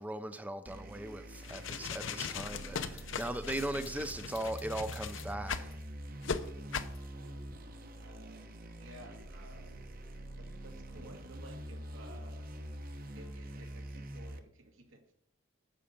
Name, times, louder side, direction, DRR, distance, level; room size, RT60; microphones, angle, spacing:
voice 1, 0.0-5.7, right 1 dB, 10° right, 0.5 m, -39 dB
sound 1, 0.7-14.4, equal, 45° right, 1.1 m, -45 dB
sound 2, 1.4-5.7 6.2-6.4 6.7-7.0, left 6 dB, 70° left, 0.8 m, -39 dB
voice 2, 8.0-9.8 10.4-12.5 13.1-15.1, right 1 dB, 85° right, 2.2 m, -55 dB
10.0 x 7.0 x 5.2 m
head